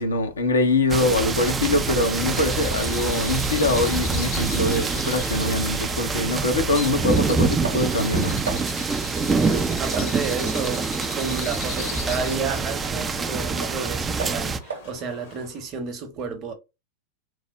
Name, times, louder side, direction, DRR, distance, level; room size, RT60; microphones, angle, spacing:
voice 1, 0.0-8.4, left 2 dB, 70° left, 0.7 m, -23 dB
Bird vocalization bird call bird song, 0.9-15.7, left 5 dB, 55° left, 1.0 m, -39 dB
sound 1, 0.9-14.6, right 4 dB, 15° right, 0.4 m, -26 dB
sound 2, 7.6-8.1 8.5-8.9 9.3-9.5 9.9-13.9 14.2-14.9, right 5 dB, 70° right, 0.7 m, -37 dB
voice 2, 9.3-10.9 11.1-16.5, right 5 dB, 35° right, 0.9 m, -31 dB
3.3 x 2.0 x 3.4 m
figure-of-eight pair, 90°, 0 cm